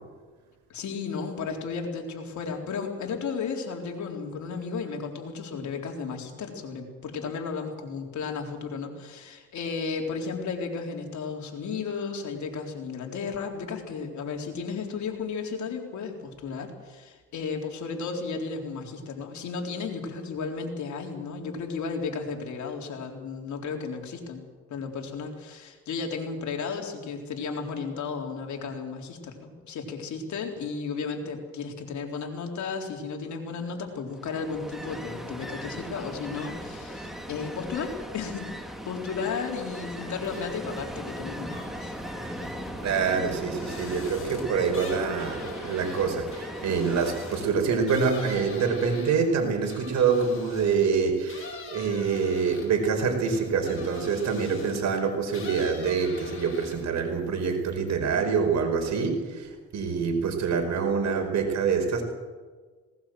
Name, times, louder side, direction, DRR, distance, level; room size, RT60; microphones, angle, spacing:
voice 1, 0.7-24.4 24.7-38.5 38.8-41.9, left 5 dB, 70° left, 2 dB, 4.0 m, -34 dB
Ocean, 34.1-48.2, equal, ahead, 3.1 m, -38 dB
sound 1, 40.2-40.8 41.1-50.8 51.2-54.9 55.3-57.0 57.3-57.9, left 4 dB, 45° left, 6.3 m, -44 dB
voice 2, 42.8-62.0, right 5 dB, 65° right, 4 dB, 5.0 m, -26 dB
19.0 x 19.0 x 7.8 m, 1.4 s
cardioid pair, 90°, 30 cm